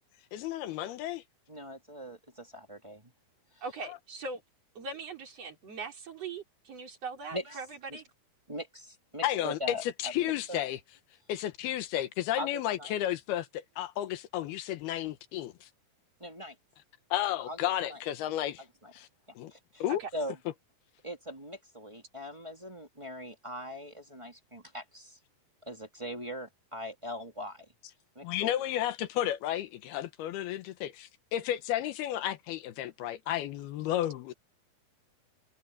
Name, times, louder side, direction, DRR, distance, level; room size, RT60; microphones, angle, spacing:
voice 1, 0.3-1.2 3.9-4.0 9.2-10.8 11.3-15.7 17.1-18.6 18.9-19.1 19.4-19.5 19.8-20.0 28.2-34.3, left 12 dB, 85° left, 3.1 m, -32 dB
voice 2, 1.5-3.1 3.5-3.6 7.3-7.6 7.9-8.0 8.5-10.6 12.3-12.9 16.2-16.5 17.5-18.0 18.8-18.9 19.3-19.8 20.1-20.4 21.0-25.2 25.6-27.7 28.1-28.6, equal, 10° right, 1.5 m, -41 dB
voice 3, 3.6-4.4 4.7-8.1 19.9-20.1, right 4 dB, 40° right, 4.9 m, -40 dB
omnidirectional pair, 4.4 m